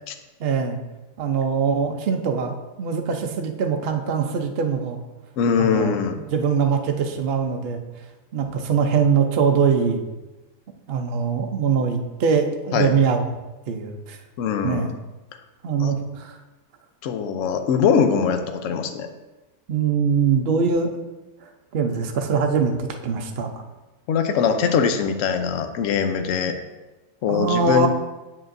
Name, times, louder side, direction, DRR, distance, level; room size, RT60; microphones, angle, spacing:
voice 1, 0.4-0.8 1.2-5.0 5.6-6.0 6.3-7.8 8.3-10.0 10.9-13.2 13.7-14.2 14.6-14.9 15.6-16.4 19.7-21.0 21.4-23.5 27.3-27.9, right 6 dB, 55° right, 4 dB, 0.7 m, -22 dB
voice 2, 5.4-6.2 12.7-12.9 14.4-14.9 15.8-16.0 17.0-19.1 24.1-26.5 27.2-27.9, left 6 dB, 65° left, 7 dB, 0.9 m, -22 dB
7.8 x 7.3 x 2.6 m, 1.1 s
omnidirectional pair, 1.7 m